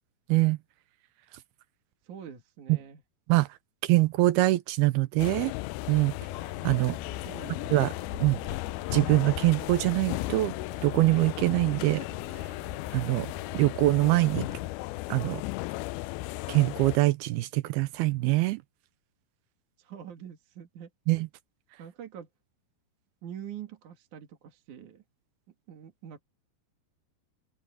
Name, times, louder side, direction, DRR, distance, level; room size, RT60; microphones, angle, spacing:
voice 1, 2.1-3.0 7.2-7.6 19.8-20.9 21.8-22.3 23.2-25.0 25.7-26.2, right 9 dB, 50° right, 3.0 m, -44 dB
voice 2, 3.8-5.5 5.9-6.1 6.6-7.0 7.7-7.9 8.2-8.4 8.9-10.5 10.8-12.0 12.9-13.3 13.5-14.5 15.1-15.4 16.5-18.6 21.1-21.3, right 19 dB, 80° right, 2.4 m, -24 dB
sound 1, 5.2-17.0, left 20 dB, 90° left, 2.1 m, -36 dB
sound 2, 6.3-14.7, left 4 dB, 60° left, 8.2 m, -46 dB
open air
omnidirectional pair, 4.9 m